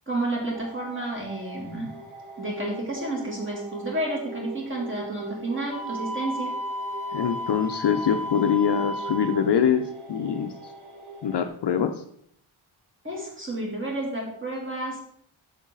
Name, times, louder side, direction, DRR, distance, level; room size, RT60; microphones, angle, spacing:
voice 1, 0.1-1.9 2.4-6.5 13.0-15.0, right 1 dB, 25° right, -2 dB, 2.7 m, -31 dB
sound 1, 0.5-11.5, right 2 dB, 85° right, 2.2 m, -42 dB
Wind instrument woodwind instrument, 5.7-9.4, equal, ahead, 3.8 m, -33 dB
voice 2, 7.1-10.7 11.2-12.0, left 8 dB, 55° left, 7 dB, 0.6 m, -24 dB
8.0 x 7.3 x 3.8 m, 0.66 s
wide cardioid pair, 160°, 49 cm